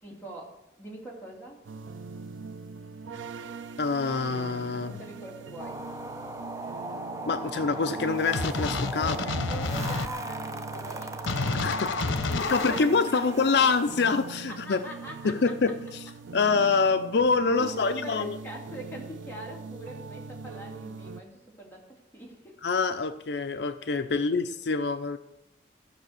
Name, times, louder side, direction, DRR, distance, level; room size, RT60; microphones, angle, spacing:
voice 1, 0.0-1.6 4.7-5.9 9.0-11.4 11.9-13.7 14.5-15.3 17.6-22.6 24.1-24.3, right 1 dB, 10° left, -3 dB, 2.7 m, -42 dB
sound 1, 1.6-21.2, right 4 dB, 85° right, 0.5 m, -42 dB
voice 2, 3.8-4.9 7.3-9.1 11.5-14.8 15.2-16.0 16.3-18.4 22.6-25.2, left 4 dB, 65° left, 9 dB, 0.5 m, -26 dB
sound 2, 5.6-14.3, right 2 dB, 15° right, 0.7 m, -39 dB
sound 3, 8.3-10.1 11.3-12.8, left 3 dB, 85° left, 0.8 m, -29 dB
15.0 x 6.1 x 6.5 m, 0.90 s
head